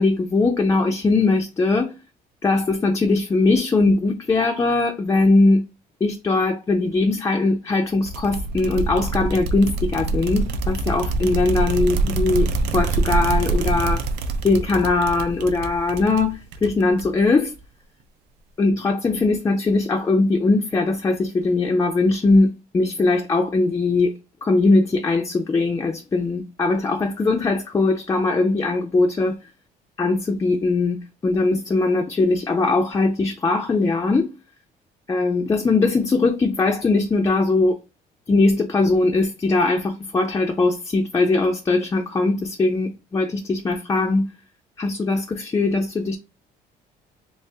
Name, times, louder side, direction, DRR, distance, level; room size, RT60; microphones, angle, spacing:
voice 1, 0.0-1.9 2.4-5.6 6.0-14.1 14.4-17.5 18.6-24.1 24.4-29.4 30.0-34.3 35.1-37.8 38.3-44.3 44.8-46.2, left 3 dB, 20° left, 0.4 m, -20 dB
sound 1, 8.1-17.3, right 3 dB, 85° right, 0.5 m, -25 dB
3.3 x 2.8 x 2.7 m
cardioid pair, 110°, 17 cm